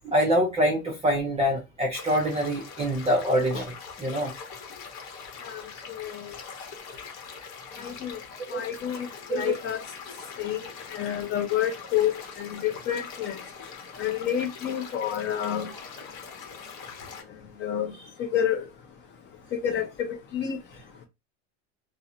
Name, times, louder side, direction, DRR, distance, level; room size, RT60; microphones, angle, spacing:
voice 1, 0.0-4.3 8.5-8.6 9.3-9.5, equal, 15° right, 0.6 m, -25 dB
sound 1, 1.9-17.2, left 5 dB, 45° left, 1.0 m, -42 dB
voice 2, 7.8-8.2 8.5-9.8 10.4-10.6 10.9-13.4 14.0-15.7 17.6-17.9 18.3-18.6 19.5-19.9 20.3-20.6, left 10 dB, 30° left, 0.5 m, -28 dB
2.3 x 2.1 x 2.7 m
supercardioid pair, 120°, 37 cm